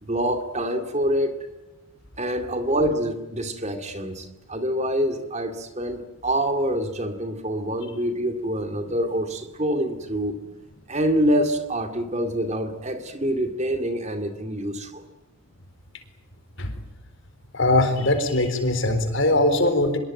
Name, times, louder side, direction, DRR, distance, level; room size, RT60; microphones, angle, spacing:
voice 1, 0.0-1.4 2.2-10.4 10.9-15.0, equal, 30° right, 8 dB, 2.3 m, -26 dB
voice 2, 17.5-20.0, left 2 dB, 55° left, 9 dB, 4.1 m, -21 dB
25.5 x 22.0 x 9.2 m, 0.98 s
head